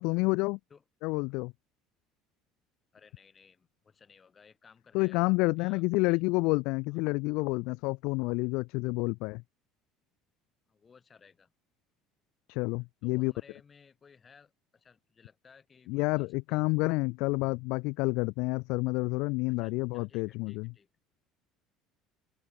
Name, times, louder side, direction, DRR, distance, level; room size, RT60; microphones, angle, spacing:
voice 1, 0.0-0.6 1.0-1.5 4.9-9.4 12.5-13.3 15.9-20.7, left 26 dB, 70° left, 0.3 m, -29 dB
voice 2, 2.9-5.3 5.6-6.2 6.9-7.0 10.7-11.5 13.0-16.6 19.5-20.9, left 6 dB, 20° left, 5.6 m, -59 dB
open air
cardioid pair, 160°, 0 cm